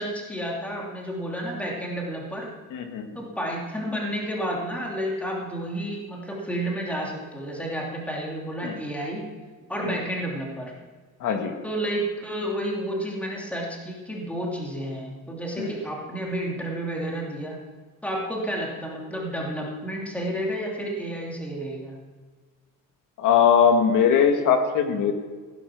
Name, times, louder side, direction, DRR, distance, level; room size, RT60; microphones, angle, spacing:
voice 1, 0.0-2.5 3.1-9.3 9.7-10.7 11.6-17.6 18.0-22.0, right 1 dB, 5° left, -2 dB, 2.8 m, -31 dB
voice 2, 2.7-3.2 8.6-8.8 9.8-10.0 11.2-11.5 15.6-15.7 23.2-25.1, left 7 dB, 60° left, 6 dB, 1.9 m, -20 dB
17.0 x 9.6 x 6.3 m, 1.4 s
cardioid pair, 160°, 34 cm